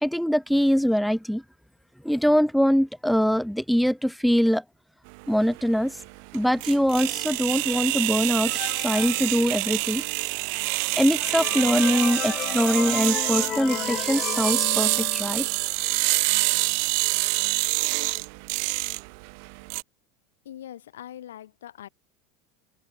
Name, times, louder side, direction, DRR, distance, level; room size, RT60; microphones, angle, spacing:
voice 1, 0.0-1.4 2.0-4.6 5.3-6.0 6.3-8.5 8.8-10.0 11.0-15.5, equal, ahead, 0.8 m, -23 dB
sound 1, 5.1-19.8, right 37 dB, 65° right, 0.3 m, -27 dB
sound 2, 8.4-10.0 10.6-10.7 11.0-15.6, left 12 dB, 45° left, 2.1 m, -34 dB
voice 2, 20.4-21.9, left 11 dB, 80° left, 5.5 m, -42 dB
open air
hypercardioid pair, 85°, 0 cm